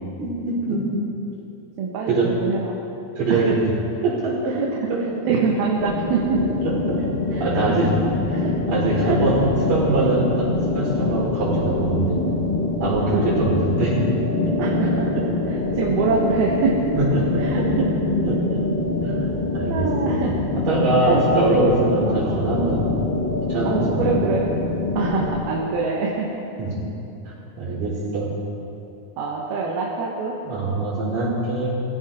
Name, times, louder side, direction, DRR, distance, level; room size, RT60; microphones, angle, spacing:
voice 1, 0.2-0.8 2.1-2.3 3.2-3.5 4.0-4.6 4.9-5.0 6.9-7.9 8.7-12.2 12.8-13.9 14.9-15.2 17.0-17.9 18.2-18.4 19.0-19.1 19.5-20.2 20.7-22.9 23.5-24.2 26.6-26.7 27.6-28.4 30.4-31.8, right 2 dB, 70° right, -7 dB, 6.7 m, -23 dB
voice 2, 1.8-2.7 3.3-3.4 4.5-4.8 5.2-6.4 7.3-7.8 8.3-8.5 9.0-9.3 13.1-13.2 14.6-15.1 15.5-16.8 17.4-17.9 19.7-20.3 21.0-21.2 21.6-21.7 22.2-22.5 23.6-24.5 25.0-26.4 29.2-30.4, right 5 dB, 85° right, -3 dB, 3.3 m, -25 dB
sound 1, 5.8-25.4, left 2 dB, 60° left, 0.5 m, -24 dB
22.0 x 16.0 x 3.7 m, 2.9 s
omnidirectional pair, 4.2 m